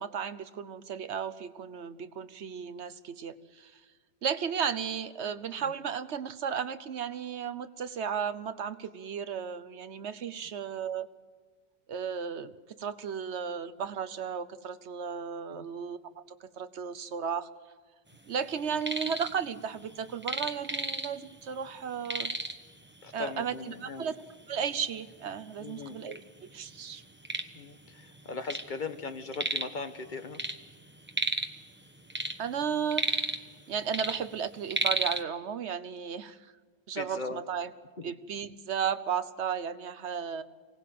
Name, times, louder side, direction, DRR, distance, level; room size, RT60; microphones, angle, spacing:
voice 1, 0.0-3.8 4.2-11.1 11.9-12.5 12.8-17.5 18.3-22.4 23.1-27.0 32.4-33.4 33.7-36.5 36.9-37.7 38.0-40.4, right 7 dB, 85° right, 13 dB, 1.3 m, -34 dB
sound 1, 18.6-19.3 19.6-21.4 21.7-21.8 22.0-22.7 23.5-23.6 24.1-24.2 24.9-25.0 25.3-26.2 26.7-28.7 29.0-29.8 30.1-31.6 32.0-33.6 33.9-35.2, right 1 dB, 10° right, 1.1 m, -33 dB
voice 2, 23.0-24.0 25.6-26.0 27.5-30.4 36.9-37.4 38.0-38.1, left 4 dB, 45° left, 9 dB, 1.3 m, -39 dB
24.5 x 18.0 x 7.7 m, 1.5 s
omnidirectional pair, 1.1 m